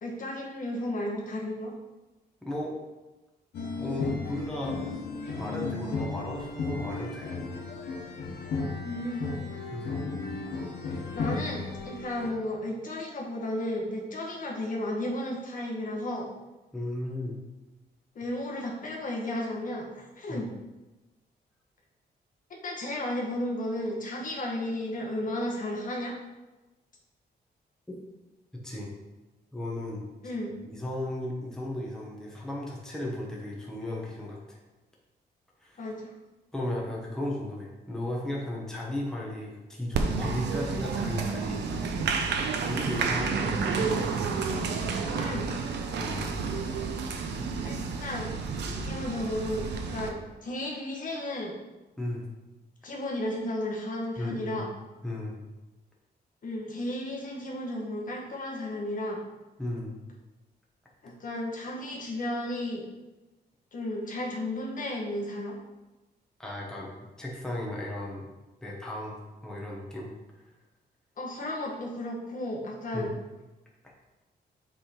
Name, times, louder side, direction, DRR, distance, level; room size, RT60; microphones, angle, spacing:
voice 1, 0.0-1.7 8.8-9.3 11.1-16.3 18.1-20.5 22.5-26.2 30.2-30.6 35.8-36.1 43.7-43.9 45.2-45.5 47.6-48.3 48.8-51.5 52.8-54.7 56.4-59.2 61.0-62.9 63.7-65.6 71.2-73.2, left 1 dB, 50° left, -1 dB, 1.3 m, -33 dB
voice 2, 2.4-2.8 3.7-4.8 5.4-7.3 7.8-8.0 9.7-10.0 16.7-17.4 20.3-20.5 28.5-28.9 29.5-30.1 30.6-34.6 35.6-35.8 36.5-41.8 42.6-44.3 46.0-46.3 52.0-52.3 54.2-54.7 55.0-55.4 59.6-60.0 66.4-66.9 67.2-68.3 68.6-70.1 72.9-73.1, left 1 dB, 5° left, -3 dB, 1.2 m, -35 dB
sound 1, 3.5-12.3, left 4 dB, 85° left, 1.2 m, -34 dB
Applause, 39.9-50.1, right 4 dB, 90° right, 0.8 m, -30 dB
7.5 x 3.7 x 4.4 m, 1.1 s
wide cardioid pair, 150°, 17 cm